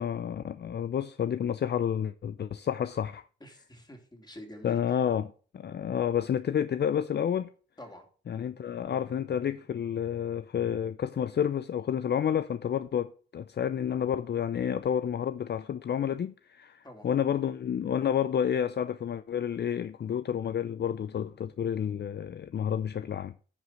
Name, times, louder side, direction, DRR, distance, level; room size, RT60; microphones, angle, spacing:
voice 1, 0.0-3.2 4.6-7.5 8.3-23.3, left 8 dB, 55° left, 0.5 m, -30 dB
voice 2, 3.4-5.0 7.8-8.0 16.8-17.1, left 1 dB, 20° left, 3.5 m, -47 dB
10.5 x 5.2 x 6.1 m
supercardioid pair, 50°, 21 cm